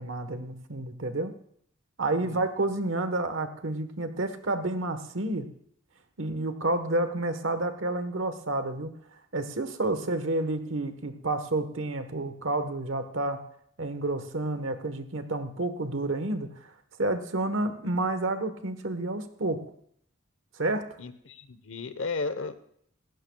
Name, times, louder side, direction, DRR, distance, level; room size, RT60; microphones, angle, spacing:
voice 1, 0.0-1.3 2.0-5.5 6.2-8.9 9.3-13.4 13.8-16.5 17.0-19.6 20.6-20.8, right 2 dB, 65° right, 9 dB, 1.2 m, -30 dB
voice 2, 21.0-22.6, left 4 dB, 70° left, 12 dB, 0.9 m, -34 dB
18.5 x 16.0 x 2.3 m, 0.67 s
head